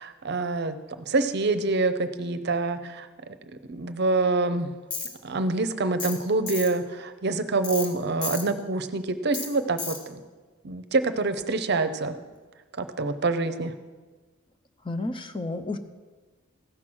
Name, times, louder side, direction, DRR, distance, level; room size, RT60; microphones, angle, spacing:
voice 1, 0.0-3.1 3.7-4.7 5.2-10.2 10.6-12.2 12.8-13.7, right 3 dB, 55° right, 10 dB, 0.7 m, -26 dB
Tools, 4.9-5.1 6.0-6.2 6.5-6.7 7.6-7.9 8.2-8.4 9.3-9.5 9.8-10.0, left 4 dB, 55° left, 2.3 m, -32 dB
voice 2, 14.8-15.8, left 2 dB, 25° left, 7 dB, 0.6 m, -31 dB
15.5 x 6.0 x 6.1 m, 1.3 s
head